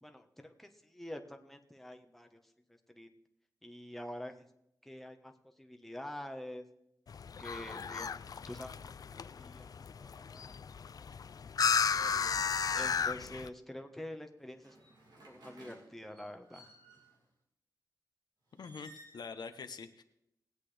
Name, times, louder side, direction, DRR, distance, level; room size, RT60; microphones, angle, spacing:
voice 1, 0.0-2.4 2.9-3.1 3.6-4.5 4.8-5.3 5.6-6.6 7.4-10.6 11.0-11.1 11.7-12.2 12.7-14.8 15.3-16.7, left 1 dB, 5° left, 5 dB, 1.2 m, -47 dB
sound 1, 7.1-13.5, left 6 dB, 60° left, 0.4 m, -34 dB
sound 2, 11.9-13.6 14.4-17.2 18.5-19.2, right 1 dB, 75° right, 2.9 m, -58 dB
voice 2, 18.5-20.0, left 5 dB, 75° left, 8 dB, 0.9 m, -45 dB
20.0 x 8.3 x 3.4 m, 0.80 s
cardioid pair, 70°, 7 cm